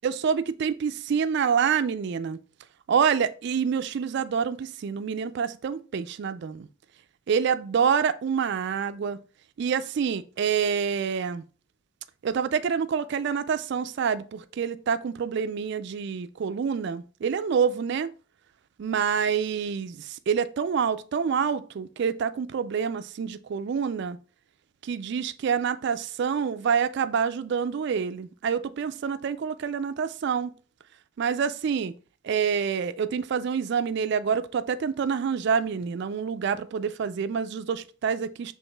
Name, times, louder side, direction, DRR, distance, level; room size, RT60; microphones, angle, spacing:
voice 1, 0.0-2.4 2.9-6.7 7.3-9.2 9.6-11.4 12.2-18.1 18.8-24.2 24.8-30.5 31.2-31.9 32.2-38.5, right 6 dB, 55° right, 0.3 m, -27 dB
7.1 x 3.2 x 2.2 m
head